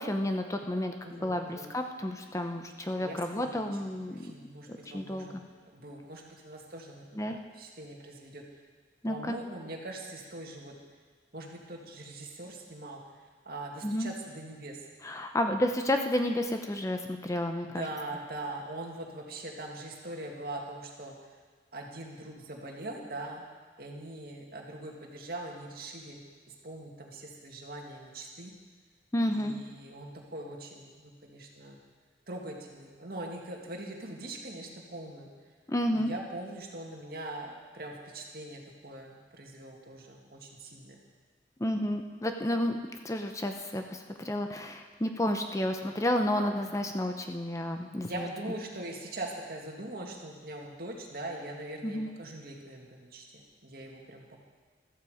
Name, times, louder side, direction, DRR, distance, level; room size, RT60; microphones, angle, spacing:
voice 1, 0.0-4.3 4.7-5.3 7.1-7.4 9.0-9.4 13.8-14.1 15.0-17.8 29.1-29.6 35.7-36.1 41.6-42.8 43.0-48.3 51.8-52.1, left 1 dB, 20° left, 5 dB, 0.7 m, -31 dB
voice 2, 1.0-1.7 3.0-3.8 4.1-5.4 5.7-8.4 9.0-10.7 11.3-13.0 13.5-14.8 17.6-21.2 21.7-23.4 23.8-26.2 26.6-28.5 29.3-31.8 32.3-35.3 35.9-41.0 48.0-54.4, right 2 dB, 55° right, 0 dB, 2.1 m, -42 dB
14.5 x 13.5 x 5.0 m, 1.5 s
head